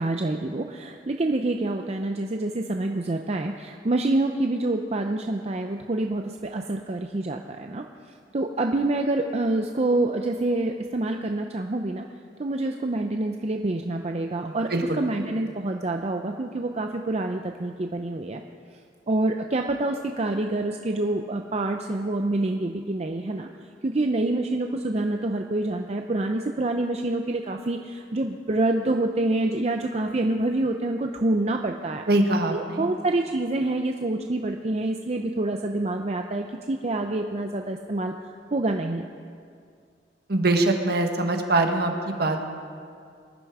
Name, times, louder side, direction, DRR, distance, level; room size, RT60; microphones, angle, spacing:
voice 1, 0.0-7.8 8.3-12.1 12.4-18.4 19.1-23.5 23.8-32.0 32.5-39.1, right 2 dB, 35° right, 4 dB, 0.5 m, -27 dB
voice 2, 14.4-15.0 32.1-32.9 40.3-42.4, right 2 dB, 60° right, 4 dB, 1.4 m, -23 dB
20.0 x 11.5 x 4.8 m, 2.2 s
head